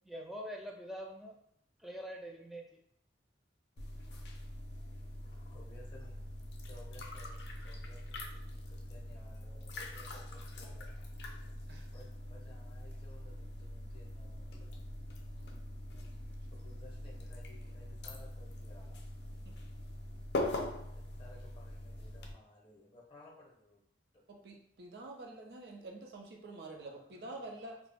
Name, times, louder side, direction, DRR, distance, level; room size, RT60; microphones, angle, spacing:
voice 1, 0.0-1.3 1.8-2.7, equal, ahead, -1 dB, 0.3 m, -44 dB
sound 1, 3.8-22.3, left 1 dB, 70° left, 0.4 m, -43 dB
voice 2, 5.5-6.1 6.7-11.1 11.9-14.8 16.5-19.2 20.9-23.8 24.1-24.2 26.7-27.5, left 2 dB, 30° left, -2 dB, 0.7 m, -59 dB
voice 3, 24.3-27.8, right 2 dB, 65° right, 1 dB, 0.5 m, -48 dB
2.3 x 2.0 x 3.3 m, 0.71 s
head